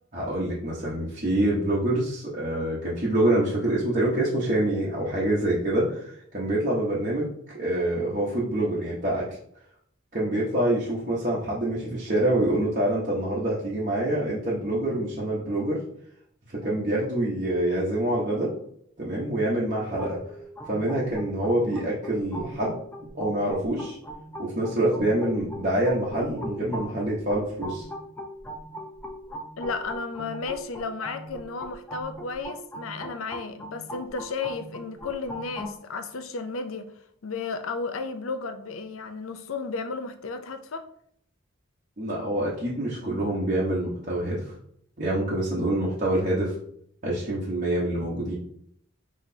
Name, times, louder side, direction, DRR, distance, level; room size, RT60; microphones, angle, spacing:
voice 1, 0.1-6.0 6.3-9.3 10.1-15.8 16.5-18.5 19.0-20.2 20.7-22.7 23.2-24.0 24.4-27.8 42.0-44.4 45.0-46.5 47.0-48.3, right 1 dB, 40° right, -7 dB, 1.1 m, -26 dB
sound 1, 20.0-35.8, equal, 10° left, 0.6 m, -40 dB
voice 2, 29.6-36.9 37.2-40.8, left 4 dB, 75° left, 8 dB, 0.6 m, -33 dB
5.9 x 3.1 x 2.8 m, 0.67 s
head